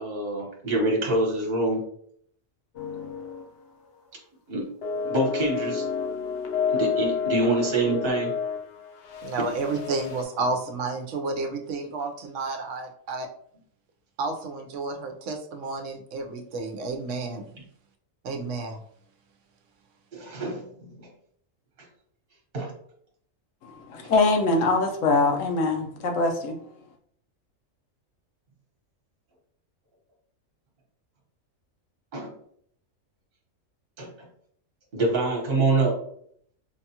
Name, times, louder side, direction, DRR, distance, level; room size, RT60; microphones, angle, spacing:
voice 1, 0.0-1.8 4.5-4.7 5.1-5.8 6.7-8.3 20.1-20.9 22.5-22.7 32.1-32.3 34.0-34.1 34.9-36.0, right 2 dB, 45° right, 1.2 m, -25 dB
sound 1, 2.8-3.6 3.8-4.1 4.8-10.2, left 6 dB, 60° left, 0.8 m, -30 dB
voice 2, 9.2-13.3 14.2-17.4 18.2-18.8, right 3 dB, 70° right, 0.9 m, -31 dB
voice 3, 23.9-26.5, left 3 dB, 80° left, 1.1 m, -23 dB
5.1 x 2.3 x 2.8 m
omnidirectional pair, 1.4 m